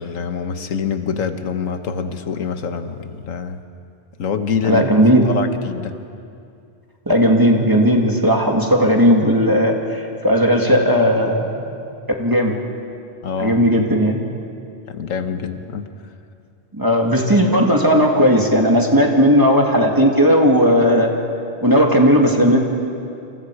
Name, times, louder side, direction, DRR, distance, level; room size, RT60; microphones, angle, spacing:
voice 1, 0.0-3.6 4.2-4.8 5.2-5.9 13.2-13.6 14.9-15.9, left 6 dB, 90° left, 8 dB, 1.5 m, -25 dB
voice 2, 4.6-5.3 7.1-11.6 12.2-12.5 13.4-14.2 16.7-21.1 21.6-22.6, equal, 15° right, 1 dB, 2.3 m, -15 dB
29.0 x 26.5 x 4.9 m, 2.5 s
omnidirectional pair, 1.3 m